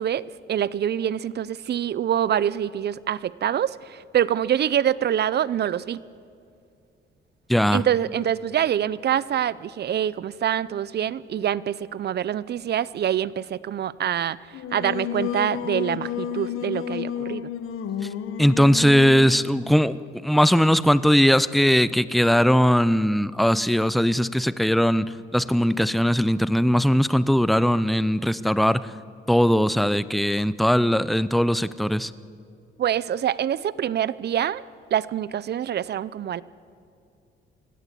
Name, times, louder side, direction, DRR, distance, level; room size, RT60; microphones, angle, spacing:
voice 1, 0.0-6.0 7.7-14.4 14.7-17.5 32.8-34.6 34.9-36.4, right 10 dB, 50° right, 19 dB, 0.6 m, -25 dB
voice 2, 7.5-7.8 18.4-28.9 29.3-32.1, equal, ahead, 16 dB, 0.6 m, -20 dB
Singing, 14.5-19.4, left 8 dB, 75° left, 1.1 m, -31 dB
23.5 x 16.5 x 8.3 m, 2.4 s
cardioid pair, 100°, 21 cm